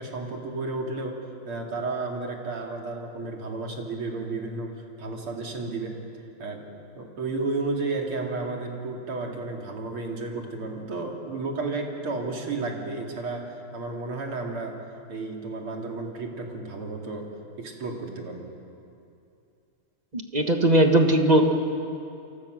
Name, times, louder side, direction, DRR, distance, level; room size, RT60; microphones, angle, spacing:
voice 1, 0.0-4.7 5.0-6.0 6.4-6.7 7.0-14.8 15.1-17.3 17.6-18.5, right 3 dB, 80° right, 1 dB, 3.6 m, -32 dB
voice 2, 20.1-21.4, right 1 dB, 20° right, 4 dB, 1.3 m, -19 dB
28.5 x 24.0 x 6.5 m, 2.6 s
omnidirectional pair, 2.3 m